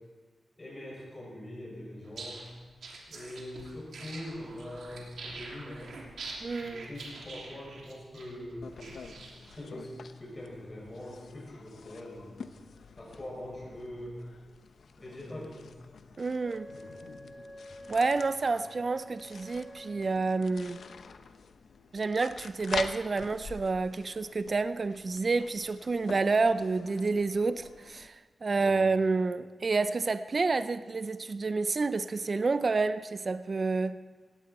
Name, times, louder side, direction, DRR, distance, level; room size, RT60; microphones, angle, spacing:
voice 1, 0.6-2.5 3.1-6.0 6.6-9.1 9.5-12.5 12.9-14.2 14.9-15.7 16.7-17.1 28.5-28.9, left 1 dB, 25° left, -4 dB, 6.7 m, -43 dB
sound 1, 2.0-9.6, right 3 dB, 85° right, 3.0 m, -45 dB
voice 2, 6.4-6.9 16.2-16.7 17.9-20.8 21.9-34.0, right 3 dB, 40° right, 13 dB, 0.4 m, -29 dB
Flicking a book, 8.6-28.1, left 5 dB, 70° left, 0.8 m, -46 dB
Wind instrument woodwind instrument, 16.4-21.0, equal, 10° left, 2.4 m, -49 dB
18.0 x 16.0 x 4.3 m, 1.4 s
wide cardioid pair, 125°, 0 cm